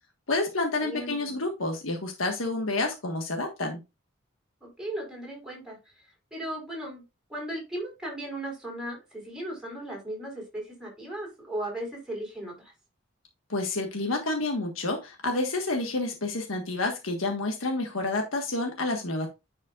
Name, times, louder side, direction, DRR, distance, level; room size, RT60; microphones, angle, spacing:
voice 1, 0.3-3.8 13.5-19.3, left 2 dB, 85° left, 3 dB, 1.5 m, -29 dB
voice 2, 0.8-1.4 4.6-5.8 6.3-7.0 7.3-12.7, right 1 dB, 5° right, -2 dB, 4.5 m, -36 dB
10.0 x 5.4 x 2.4 m, 0.25 s
head